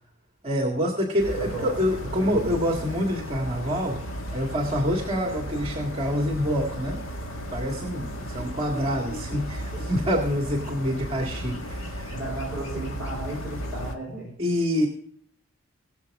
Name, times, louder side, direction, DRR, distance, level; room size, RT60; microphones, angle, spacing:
voice 1, 0.4-4.0 4.3-7.0 7.5-12.2 14.4-14.9, equal, 30° right, 3 dB, 1.7 m, -26 dB
sound 1, 1.2-13.9, equal, 75° left, 1.8 m, -35 dB
voice 2, 1.3-1.8 2.1-2.6 9.7-9.8 12.1-14.3, right 2 dB, 5° right, -8 dB, 5.3 m, -34 dB
21.5 x 7.3 x 3.5 m, 0.66 s
head